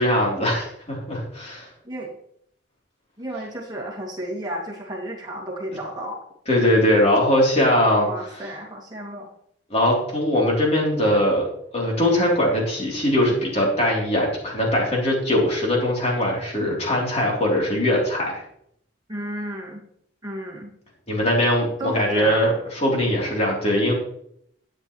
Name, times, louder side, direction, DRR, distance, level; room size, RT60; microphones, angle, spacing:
voice 1, 0.0-1.7 6.5-8.1 9.7-18.4 21.1-23.9, left 1 dB, 35° left, -2 dB, 3.4 m, -21 dB
voice 2, 1.8-2.2 3.2-6.2 8.0-9.3 19.1-19.8 20.2-20.8 21.8-22.6, right 1 dB, 20° right, -3 dB, 2.4 m, -33 dB
12.0 x 8.8 x 3.2 m, 0.70 s
head